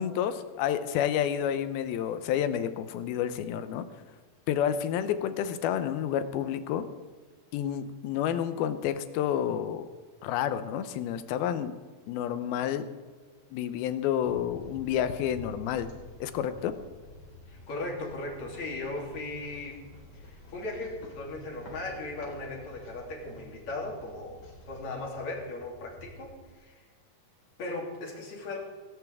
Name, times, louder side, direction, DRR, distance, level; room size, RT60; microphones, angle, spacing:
voice 1, 0.0-3.9 4.5-6.9 7.5-9.9 10.2-11.7 12.1-12.9 13.5-15.9 16.2-16.8, left 9 dB, 90° left, 11 dB, 2.8 m, -29 dB
sound 1, 14.0-25.7, left 2 dB, 30° left, 3.7 m, -53 dB
sound 2, 14.2-26.6, left 1 dB, 70° left, 4.1 m, -52 dB
voice 2, 17.5-26.9 27.6-28.6, left 2 dB, 50° left, -1 dB, 4.2 m, -38 dB
17.5 x 17.0 x 3.6 m, 1.4 s
omnidirectional pair, 4.2 m